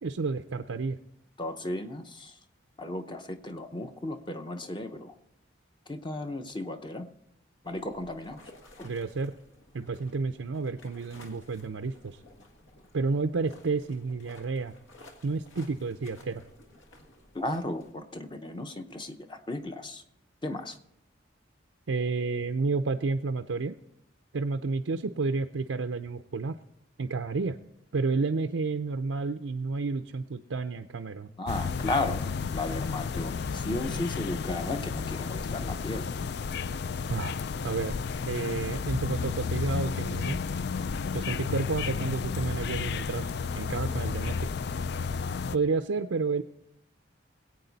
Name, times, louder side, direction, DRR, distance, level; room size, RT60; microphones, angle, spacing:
voice 1, 0.0-1.0 8.8-9.3 9.7-12.2 12.9-14.7 15.2-16.4 21.9-23.7 24.3-26.6 27.0-27.6 27.9-31.3 37.1-37.4 37.6-37.9 38.3-40.4 41.1-43.3 43.5-44.4 45.5-46.4, right 4 dB, 85° right, 6 dB, 0.5 m, -30 dB
voice 2, 1.4-2.4 2.8-5.1 5.9-7.1 7.6-8.4 8.8-8.9 17.3-20.0 20.4-20.8 31.4-32.3 32.5-36.1, left 2 dB, 25° left, 7 dB, 0.7 m, -35 dB
sound 1, 7.6-17.9, left 1 dB, 80° left, 1.7 m, -55 dB
sound 2, 31.5-45.6, left 5 dB, 55° left, 0.3 m, -32 dB
21.0 x 8.5 x 4.1 m, 0.79 s
head